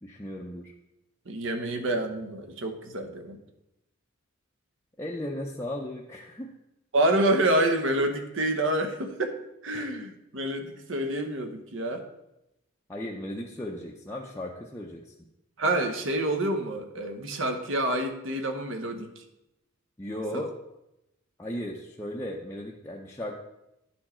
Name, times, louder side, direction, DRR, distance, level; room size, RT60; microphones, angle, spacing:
voice 1, 0.0-0.7 5.0-6.5 9.7-9.9 12.9-15.1 20.0-20.5 21.4-23.3, left 1 dB, 15° left, -2 dB, 0.5 m, -36 dB
voice 2, 1.3-3.4 6.9-12.0 15.6-19.2 20.3-20.5, right 1 dB, 65° right, 6 dB, 0.9 m, -28 dB
10.0 x 4.5 x 4.3 m, 0.89 s
head